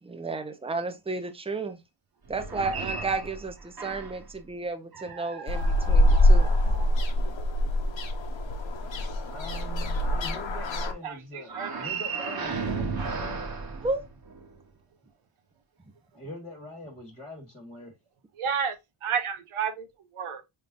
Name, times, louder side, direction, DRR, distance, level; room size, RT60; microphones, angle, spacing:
voice 1, 0.0-1.8 2.3-6.5 13.8-14.0, right 3 dB, 10° right, 0.6 m, -32 dB
sound 1, 2.3-4.3 4.9-7.3 11.4-14.6, right 4 dB, 45° right, 1.1 m, -35 dB
sound 2, 5.5-10.9, left 1 dB, 65° left, 1.0 m, -24 dB
voice 2, 9.2-13.4 16.1-17.9, left 1 dB, 15° left, 1.4 m, -43 dB
voice 3, 11.0-11.7 18.4-18.7 19.0-19.9 20.1-20.4, right 7 dB, 90° right, 0.9 m, -30 dB
5.5 x 3.6 x 2.5 m
wide cardioid pair, 110°, 49 cm